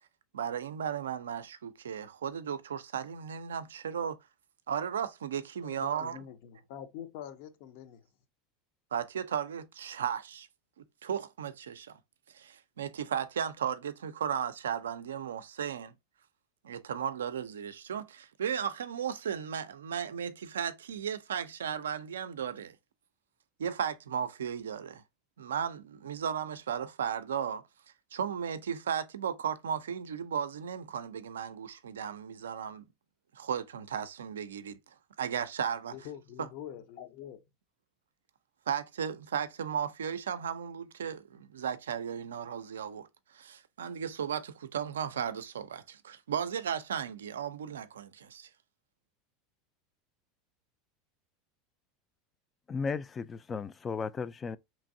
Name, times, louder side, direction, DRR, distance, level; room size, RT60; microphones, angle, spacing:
voice 1, 0.3-4.2 4.7-6.2 8.9-10.5 10.8-12.0 12.3-15.9 16.6-22.8 23.6-25.0 25.4-27.6 28.1-32.8 33.3-34.8 35.2-35.9 36.4-36.5 38.7-43.1 43.3-48.5, right 8 dB, 85° right, 0.4 m, -35 dB
voice 2, 5.6-8.1 35.9-37.4, left 10 dB, 65° left, 0.6 m, -45 dB
voice 3, 52.7-54.6, left 5 dB, 25° left, 0.3 m, -35 dB
3.0 x 2.5 x 2.6 m
hypercardioid pair, 90°, 0 cm